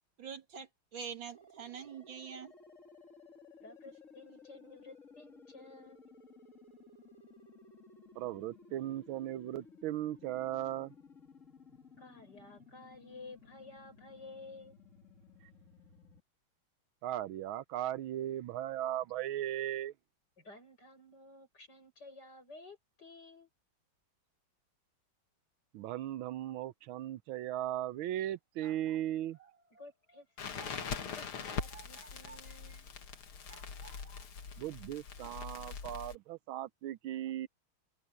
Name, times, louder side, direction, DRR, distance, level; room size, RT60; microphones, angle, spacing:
voice 1, 0.2-2.5, right 6 dB, 65° right, 2.5 m, -45 dB
sound 1, 1.3-16.2, left 4 dB, 35° left, 3.0 m, -57 dB
voice 2, 3.6-6.0 12.0-14.8 20.4-23.5 29.8-32.9, left 2 dB, 50° left, 8.4 m, -53 dB
voice 3, 8.2-10.9 17.0-19.9 25.7-29.4 34.6-37.5, right 12 dB, 80° right, 1.5 m, -37 dB
sound 2, 28.6-32.8 33.5-34.3, right 6 dB, 25° right, 4.2 m, -58 dB
Crackle, 30.4-36.2, left 6 dB, 90° left, 2.7 m, -42 dB
omnidirectional pair, 2.3 m